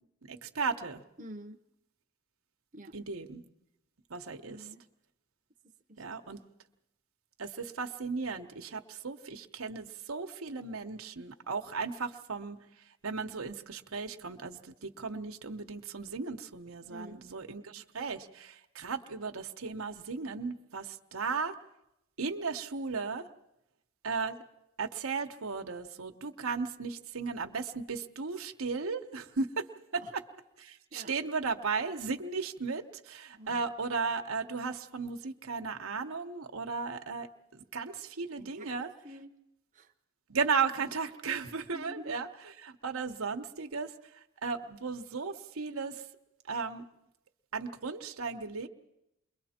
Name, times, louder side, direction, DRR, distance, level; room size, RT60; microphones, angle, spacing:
voice 1, 0.2-1.0 2.9-3.5 4.1-4.7 6.0-6.4 7.4-12.6 13.0-21.6 22.2-23.3 24.0-24.4 24.8-29.7 29.9-30.2 30.6-37.3 37.5-38.9 40.3-46.0 46.5-46.8 47.5-48.7, right 4 dB, 85° right, 5 dB, 1.1 m, -35 dB
voice 2, 1.2-1.6 2.7-3.0 4.4-4.8 5.9-6.0 16.9-17.2 29.9-30.1 30.9-31.2 33.4-33.6 38.4-38.7 39.0-39.4 39.7-39.9 41.7-42.2, equal, 35° right, 3 dB, 0.9 m, -47 dB
29.0 x 22.0 x 4.4 m, 0.84 s
head